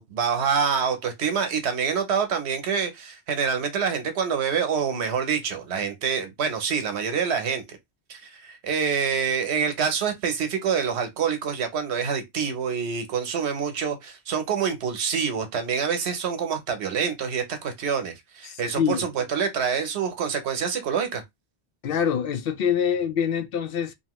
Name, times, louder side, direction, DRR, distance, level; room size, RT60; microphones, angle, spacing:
voice 1, 0.0-7.8 8.1-21.2, right 6 dB, 80° right, 1.0 m, -26 dB
voice 2, 18.4-19.1 21.8-23.9, left 8 dB, 65° left, 0.7 m, -25 dB
2.7 x 2.6 x 2.9 m
omnidirectional pair, 1.1 m